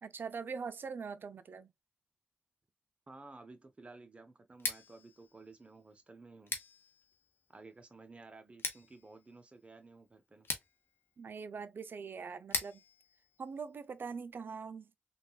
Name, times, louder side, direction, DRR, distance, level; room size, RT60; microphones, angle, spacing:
voice 1, 0.0-1.7 11.2-12.8 13.4-14.9, right 5 dB, 60° right, 0.4 m, -42 dB
voice 2, 3.1-6.6 7.5-10.5, right 3 dB, 30° right, 0.7 m, -54 dB
Scissors, 4.5-14.3, left 4 dB, 70° left, 0.8 m, -45 dB
3.6 x 2.3 x 2.3 m
cardioid pair, 65°, 4 cm